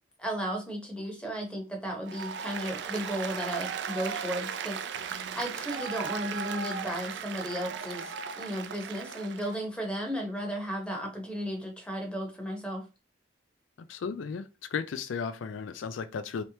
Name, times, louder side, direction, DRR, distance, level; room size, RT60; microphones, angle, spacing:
voice 1, 0.2-12.9, equal, 5° left, 0.9 m, -35 dB
Applause, 2.1-9.6, right 7 dB, 65° right, 0.4 m, -36 dB
voice 2, 13.9-16.4, left 6 dB, 85° left, 0.4 m, -35 dB
3.2 x 3.0 x 2.8 m
head